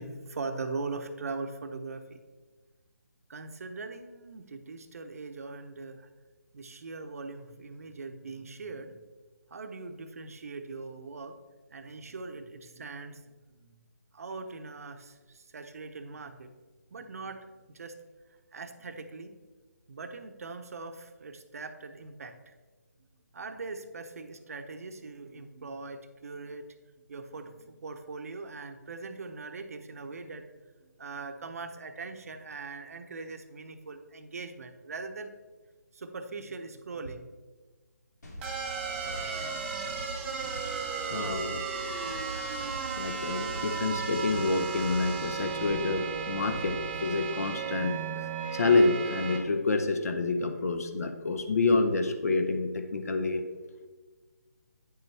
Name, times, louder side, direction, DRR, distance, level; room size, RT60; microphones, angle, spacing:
voice 1, 0.0-2.2 3.3-6.1 6.5-9.0 9.5-11.3 11.7-13.2 13.5-13.8 14.1-16.5 16.9-17.4 17.7-18.0 18.5-19.3 19.9-22.5 23.3-26.6 27.1-30.5 30.8-35.3 35.9-37.4, right 3 dB, 55° right, 7 dB, 0.8 m, -41 dB
sound 1, 38.2-47.0, equal, 75° left, 2.9 m, -44 dB
sound 2, 38.4-49.4, right 6 dB, 10° right, 0.7 m, -35 dB
voice 2, 41.0-41.6 43.0-47.9 48.5-53.4, left 3 dB, 60° left, 7 dB, 1.0 m, -28 dB
9.4 x 6.9 x 3.4 m, 1.3 s
hypercardioid pair, 165°, 9 cm